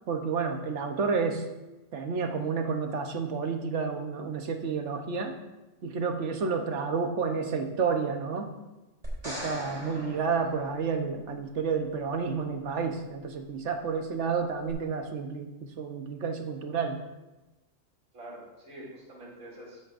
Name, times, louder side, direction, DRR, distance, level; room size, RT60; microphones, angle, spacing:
voice 1, 0.1-1.4 1.9-5.3 5.8-8.5 9.2-15.5 15.8-17.0, right 5 dB, 60° right, 5 dB, 1.2 m, -30 dB
sound 1, 9.0-11.3 14.7-14.8, equal, 30° right, 3.5 m, -41 dB
voice 2, 18.1-19.8, right 1 dB, 80° right, -4 dB, 3.3 m, -46 dB
13.5 x 10.0 x 2.6 m, 1.1 s
omnidirectional pair, 1.4 m